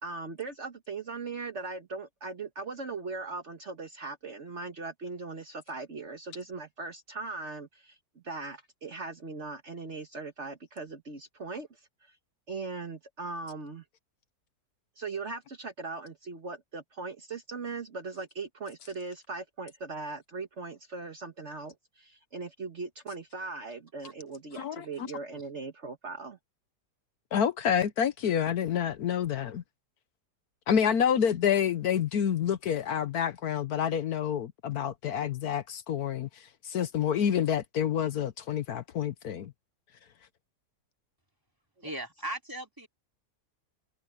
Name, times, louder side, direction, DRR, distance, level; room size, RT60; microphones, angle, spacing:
voice 1, 0.0-11.9 12.5-13.8 15.0-26.4 41.8-41.9, right 3 dB, 45° right, 1.5 m, -39 dB
voice 2, 24.6-25.1 27.3-29.6 30.7-36.3 36.6-39.5, left 8 dB, 70° left, 1.3 m, -28 dB
voice 3, 41.8-42.9, right 1 dB, 10° right, 3.1 m, -38 dB
omnidirectional pair, 1.7 m